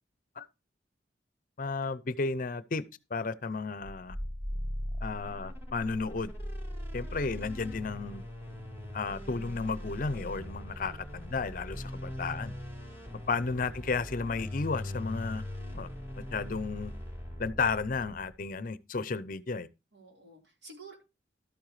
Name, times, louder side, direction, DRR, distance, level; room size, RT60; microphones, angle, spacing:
voice 1, 1.6-2.8 3.1-4.2 5.0-6.3 6.9-8.2 8.9-12.5 13.3-15.4 15.7-15.9 16.3-16.9 17.4-19.7, left 4 dB, 50° left, 0.6 m, -33 dB
sound 1, 3.8-18.4, left 1 dB, 15° right, 4.7 m, -40 dB
voice 2, 10.7-11.1 11.8-12.2 12.9-13.4 19.9-21.0, right 3 dB, 75° right, 4.1 m, -53 dB
12.5 x 8.7 x 3.2 m
head